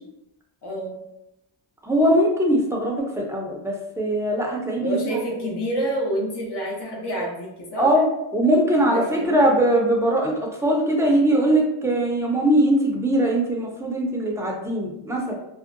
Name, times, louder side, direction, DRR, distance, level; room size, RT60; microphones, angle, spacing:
voice 1, 0.6-1.0 4.8-7.9 8.9-9.5, right 1 dB, 55° left, -2 dB, 0.9 m, -28 dB
voice 2, 1.8-5.0 5.4-5.5 7.8-8.1 8.3-15.3, right 1 dB, 5° right, -1 dB, 0.5 m, -21 dB
2.6 x 2.1 x 2.5 m, 0.86 s
wide cardioid pair, 100°, 47 cm